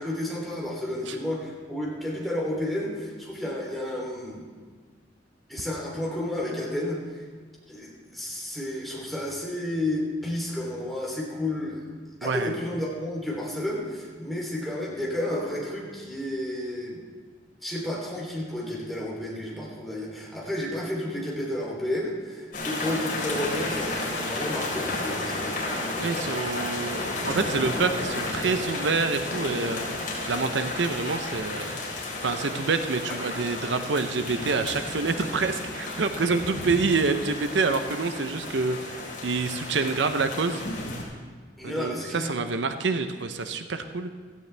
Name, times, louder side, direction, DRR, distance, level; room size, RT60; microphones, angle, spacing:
voice 1, 0.0-4.5 5.5-7.2 7.7-11.8 12.2-17.0 17.6-26.5 33.1-33.2 41.6-42.3, left 1 dB, ahead, -4 dB, 3.1 m, -31 dB
voice 2, 12.2-12.5 25.9-29.9 30.3-31.8 32.2-40.6 41.6-44.1, right 4 dB, 85° right, 8 dB, 0.7 m, -27 dB
sound 1, 22.5-41.0, left 2 dB, 50° left, 4.1 m, -32 dB
16.0 x 15.0 x 3.4 m, 1.5 s
head